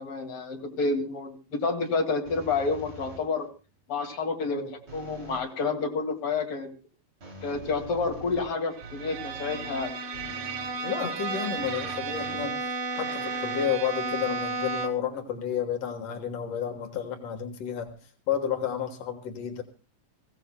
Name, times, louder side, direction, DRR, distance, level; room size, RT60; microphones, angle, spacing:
voice 1, 0.0-3.5 3.9-6.7 7.4-9.9, left 4 dB, 40° left, 2 dB, 2.3 m, -29 dB
sound 1, 2.2-3.5 4.9-5.5 7.2-10.8 11.6-13.0, right 3 dB, 25° right, 2.5 m, -45 dB
Bowed string instrument, 8.7-15.2, right 3 dB, 80° right, 4.9 m, -33 dB
voice 2, 10.8-17.9 18.3-19.6, left 8 dB, 80° left, 5 dB, 1.4 m, -31 dB
25.5 x 16.0 x 2.2 m, 0.32 s
omnidirectional pair, 5.2 m